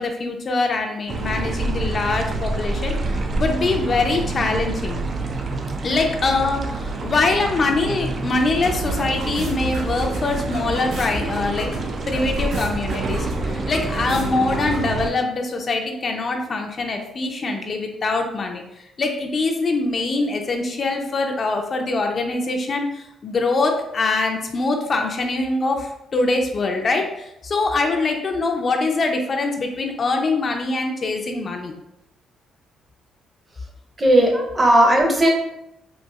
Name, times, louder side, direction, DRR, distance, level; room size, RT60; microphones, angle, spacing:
voice 1, 0.0-5.0 5.8-31.8, left 3 dB, 45° left, 2 dB, 0.4 m, -23 dB
sound 1, 1.1-15.1, right 3 dB, 45° right, 0.3 m, -27 dB
sound 2, 8.0-15.1, right 1 dB, 85° right, 1.0 m, -37 dB
voice 2, 34.0-35.3, right 1 dB, 25° right, 1 dB, 0.8 m, -16 dB
4.0 x 2.4 x 2.3 m, 0.83 s
cardioid pair, 90°, 0 cm